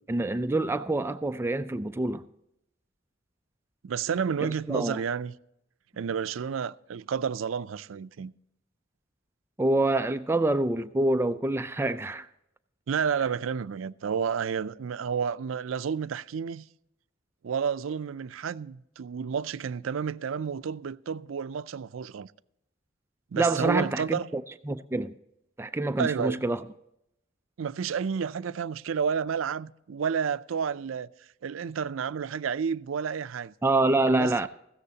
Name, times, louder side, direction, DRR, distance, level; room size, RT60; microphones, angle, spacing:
voice 1, 0.1-2.2 4.4-5.0 9.6-12.3 23.4-25.1 25.6-26.6 33.6-34.5, right 2 dB, 10° right, 0.4 m, -26 dB
voice 2, 3.8-5.3 6.0-8.3 12.9-16.7 17.4-22.3 23.3-24.3 26.0-26.4 27.6-31.1 31.4-33.5 34.1-34.3, right 6 dB, 90° right, 0.4 m, -30 dB
15.5 x 13.5 x 2.8 m
head